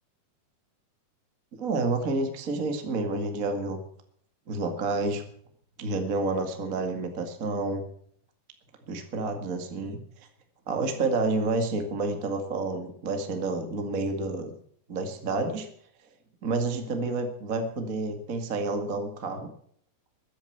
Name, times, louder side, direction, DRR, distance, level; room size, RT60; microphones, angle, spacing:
voice 1, 1.6-3.8 4.5-5.2 5.8-7.8 8.9-10.0 10.7-14.5 14.9-15.7 16.4-19.5, right 3 dB, 30° right, 5 dB, 1.6 m, -29 dB
14.5 x 10.5 x 7.9 m, 0.62 s
omnidirectional pair, 4.4 m